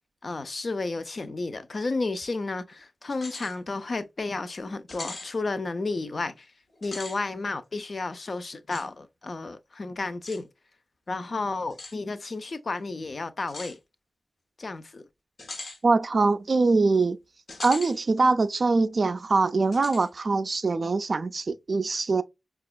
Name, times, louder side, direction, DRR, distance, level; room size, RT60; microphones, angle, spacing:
voice 1, 0.2-6.5 6.8-10.5 11.1-13.8 14.6-15.0, left 3 dB, 50° left, 0.5 m, -32 dB
sound 1, 3.1-3.6 4.0-4.1 4.9-5.3 6.7-7.2 8.7-8.9 10.3-10.4 11.7-12.0 13.5-13.8 15.4-15.8 17.5-18.0 18.4-18.5 19.7-20.1, left 2 dB, 75° left, 0.9 m, -40 dB
voice 2, 15.8-17.2 17.6-22.2, right 3 dB, 55° right, 0.3 m, -23 dB
4.8 x 2.3 x 2.2 m
wide cardioid pair, 90°, 0 cm